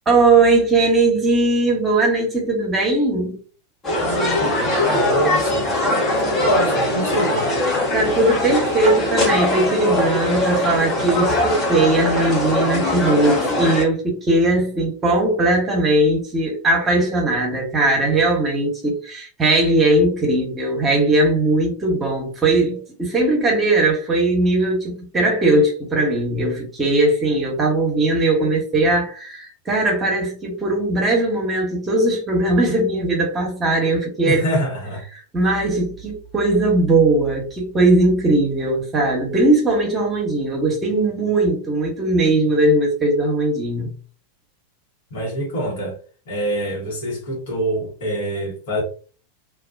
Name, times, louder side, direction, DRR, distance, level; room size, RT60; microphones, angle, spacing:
voice 1, 0.1-3.4 7.9-34.4 35.3-43.9, right 2 dB, 20° right, 1.0 m, -19 dB
sound 1, 3.8-13.8, left 1 dB, 25° left, 0.9 m, -21 dB
voice 2, 4.0-7.5 34.2-35.1 45.1-46.0 46.3-48.8, equal, 60° left, 1.2 m, -25 dB
2.3 x 2.2 x 2.4 m
figure-of-eight pair, 90°, 0 cm